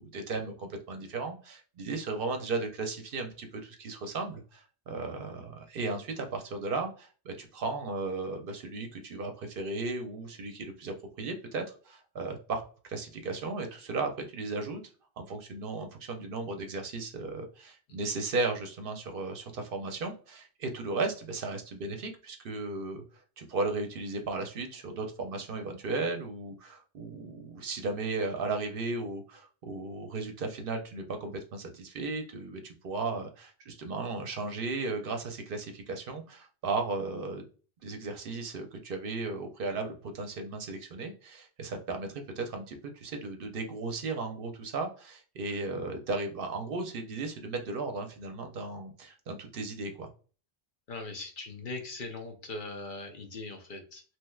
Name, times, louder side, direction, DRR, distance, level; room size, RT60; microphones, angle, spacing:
voice 1, 0.0-12.6 12.9-14.8 15.2-23.0 23.4-37.4 37.8-50.1, right 3 dB, 65° right, 5 dB, 0.7 m, -35 dB
voice 2, 50.9-54.0, left 3 dB, 55° left, 3 dB, 0.8 m, -40 dB
3.2 x 2.9 x 2.2 m, 0.38 s
omnidirectional pair, 1.1 m